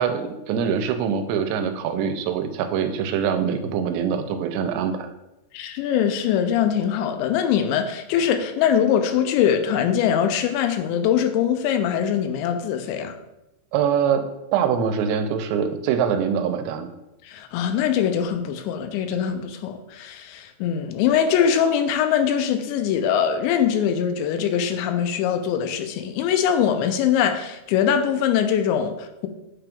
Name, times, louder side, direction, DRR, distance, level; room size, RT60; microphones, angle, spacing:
voice 1, 0.0-5.1 13.7-14.2 14.5-16.9, right 7 dB, 90° right, 7 dB, 2.8 m, -24 dB
voice 2, 5.5-13.1 17.2-29.3, left 8 dB, 90° left, 8 dB, 2.8 m, -22 dB
8.7 x 5.2 x 2.3 m, 0.92 s
omnidirectional pair, 5.0 m